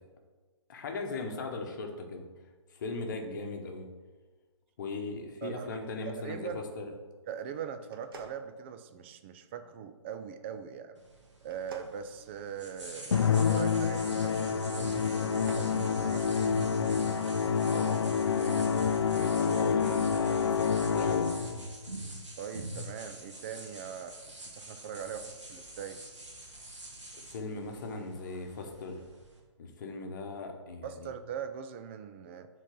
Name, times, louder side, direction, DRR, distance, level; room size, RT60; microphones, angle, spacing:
voice 1, 0.7-2.2 2.7-3.9 4.8-6.5 6.8-6.9 17.4-21.4 27.1-29.0 29.6-31.1, left 3 dB, 40° left, 3 dB, 1.1 m, -39 dB
voice 2, 5.4-5.8 6.0-6.6 7.3-11.0 11.4-14.6 15.0-16.6 22.4-26.0 30.8-32.5, right 7 dB, 25° right, 9 dB, 0.4 m, -41 dB
sound 1, 7.9-9.2 11.4-13.0 15.1-15.8, right 3 dB, 50° right, 1.0 m, -50 dB
sound 2, 11.0-29.4, right 1 dB, 70° right, 1.8 m, -45 dB
Musical instrument, 13.1-21.6, left 6 dB, 65° left, 0.6 m, -28 dB
7.3 x 3.9 x 5.3 m, 1.4 s
figure-of-eight pair, 130°, 16 cm